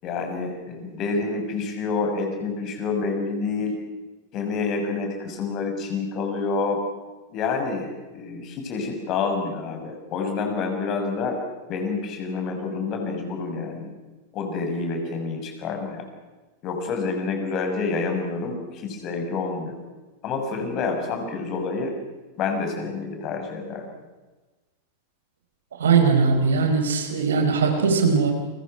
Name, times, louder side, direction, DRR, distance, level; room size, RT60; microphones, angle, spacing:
voice 1, 0.0-3.8 4.3-6.8 7.3-11.4 11.7-13.9 14.3-16.1 16.6-19.8 20.2-21.9 22.3-23.9, left 4 dB, 35° left, 4 dB, 6.4 m, -28 dB
voice 2, 25.8-28.3, right 5 dB, 65° right, 5 dB, 4.7 m, -20 dB
30.0 x 24.0 x 6.0 m, 1.2 s
figure-of-eight pair, 90°, 0 cm